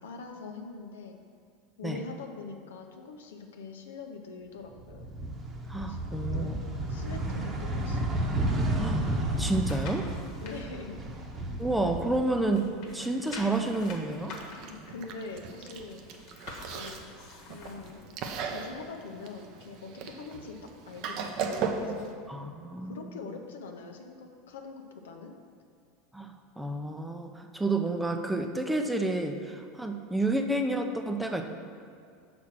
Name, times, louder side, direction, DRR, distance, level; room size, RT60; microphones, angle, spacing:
voice 1, 0.0-1.2 1.8-5.0 5.9-6.6 6.9-8.2 10.4-11.0 14.5-16.0 16.7-17.0 17.5-18.0 18.4-20.6 20.9-22.2 22.8-25.3, left 4 dB, 75° left, 4 dB, 0.7 m, -43 dB
sound 1, 4.8-12.9 13.3-14.4, right 1 dB, 35° right, 1.0 m, -32 dB
voice 2, 5.7-6.6 8.8-9.0 9.4-10.1 11.6-14.3 22.3-23.2 26.1-31.4, right 2 dB, 5° right, 4 dB, 0.6 m, -30 dB
sound 2, 9.3-10.6 11.1-12.2 12.5-18.0 18.5-18.6, left 3 dB, 55° left, 1.3 m, -47 dB
Chewing mastication, 14.2-22.1, right 5 dB, 55° right, 0.6 m, -38 dB
6.0 x 4.3 x 6.0 m, 2.3 s
hypercardioid pair, 85°, 0 cm